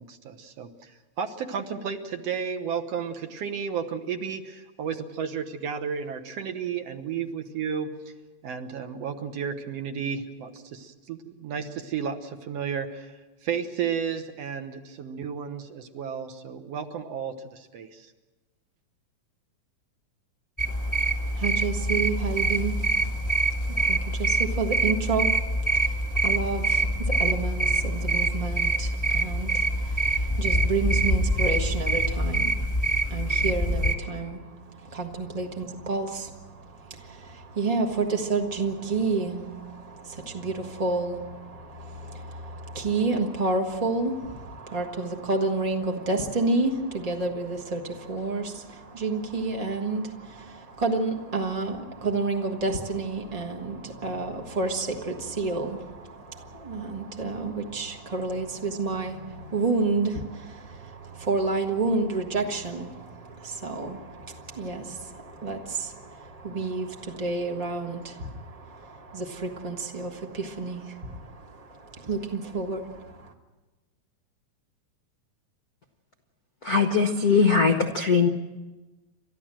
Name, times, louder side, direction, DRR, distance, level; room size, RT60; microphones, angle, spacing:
voice 1, 0.0-8.1 8.4-13.1 13.4-18.1, right 7 dB, 65° right, 7 dB, 2.0 m, -33 dB
sound 1, 20.6-33.9, right 2 dB, 10° left, 1.3 m, -25 dB
voice 2, 20.7-73.3, right 3 dB, 45° right, 2 dB, 0.4 m, -30 dB
voice 3, 76.6-78.3, left 5 dB, 60° left, 5 dB, 0.9 m, -21 dB
30.0 x 13.5 x 7.6 m, 1.2 s
omnidirectional pair, 3.4 m